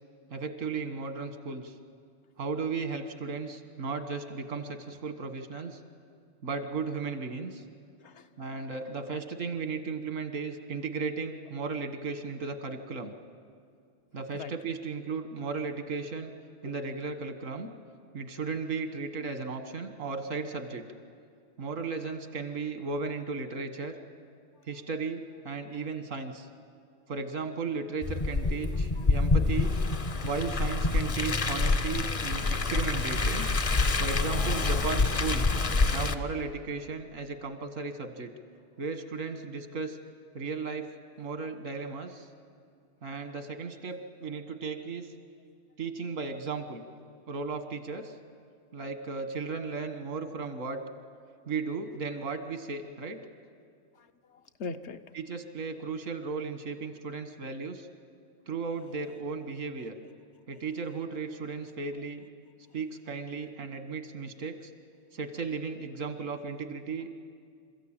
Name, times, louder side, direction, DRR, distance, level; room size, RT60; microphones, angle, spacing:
voice 1, 0.3-1.8 2.4-5.8 6.4-7.6 8.4-13.1 14.1-16.3 16.6-17.7 18.1-20.8 21.6-24.0 24.7-26.5 27.1-29.7 30.2-33.5 34.0-35.5 35.9-38.3 38.8-40.0 40.3-40.9 41.2-42.3 43.0-45.1 45.8-46.8 47.3-48.1 48.7-50.8 51.5-53.2 55.2-57.9 58.5-59.9 60.5-62.3 62.7-64.7 65.1-67.1, right 4 dB, 90° right, 8 dB, 1.8 m, -35 dB
Car, 28.0-36.1, left 3 dB, 35° left, 0.7 m, -27 dB
voice 2, 53.9-55.0 67.0-67.1, left 4 dB, 65° left, 9 dB, 1.0 m, -42 dB
27.0 x 14.5 x 8.9 m, 2.2 s
omnidirectional pair, 1.3 m